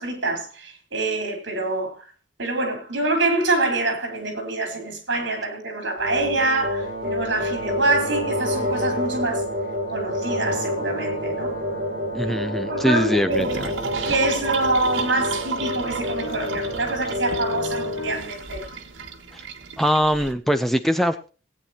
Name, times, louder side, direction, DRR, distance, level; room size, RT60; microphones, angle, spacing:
voice 1, 0.0-2.1 2.4-9.4 9.9-11.6 12.2-13.6 14.1-18.6, right 2 dB, 70° right, 4.2 m, -26 dB
sound 1, 6.0-18.2, left 1 dB, 35° right, 4.8 m, -28 dB
sound 2, 10.5-18.2, left 1 dB, 60° left, 4.5 m, -40 dB
voice 2, 12.1-13.7 19.3-19.4 19.8-21.3, equal, ahead, 0.6 m, -22 dB
sound 3, 13.3-20.3, right 5 dB, 85° right, 1.7 m, -33 dB
18.5 x 9.1 x 2.9 m
head